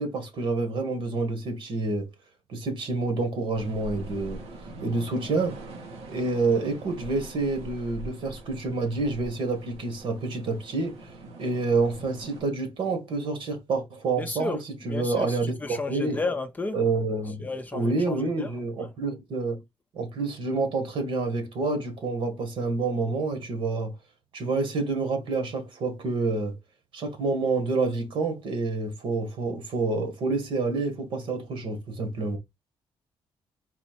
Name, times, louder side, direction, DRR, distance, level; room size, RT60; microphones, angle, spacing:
voice 1, 0.0-2.1 2.5-4.4 4.8-5.6 6.1-11.1 11.4-16.2 16.7-19.6 19.9-23.9 24.3-26.5 26.9-32.4, right 3 dB, 60° right, 1.6 m, -28 dB
sound 1, 3.5-12.4, right 2 dB, 90° right, 1.6 m, -43 dB
voice 2, 14.2-14.6 14.9-16.8 17.4-18.5, left 3 dB, 15° left, 0.5 m, -32 dB
4.2 x 2.8 x 4.4 m
cardioid pair, 165°, 10 cm